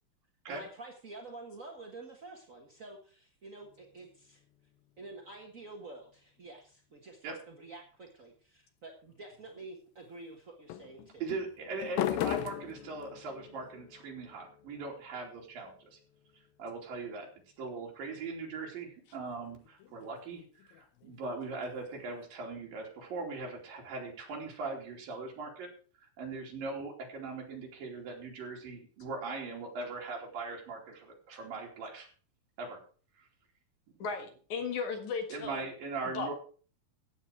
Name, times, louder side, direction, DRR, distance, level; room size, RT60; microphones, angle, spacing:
voice 1, 0.5-4.4 5.0-11.2, right 2 dB, 50° right, 1 dB, 0.9 m, -49 dB
sound 1, 3.6-5.5 9.1-9.6 10.7-17.5 19.2-22.3, left 12 dB, 80° left, 2.7 m, -41 dB
voice 2, 11.2-16.0 16.6-17.3 17.6-25.7 26.2-32.1 32.6-32.8 33.1-33.3 33.9-34.0 35.3-36.3, right 3 dB, 70° right, -1 dB, 4.7 m, -40 dB
voice 3, 34.0-35.7 36.1-36.3, left 5 dB, 60° left, 5 dB, 2.9 m, -36 dB
14.5 x 9.0 x 4.6 m, 0.41 s
omnidirectional pair, 4.1 m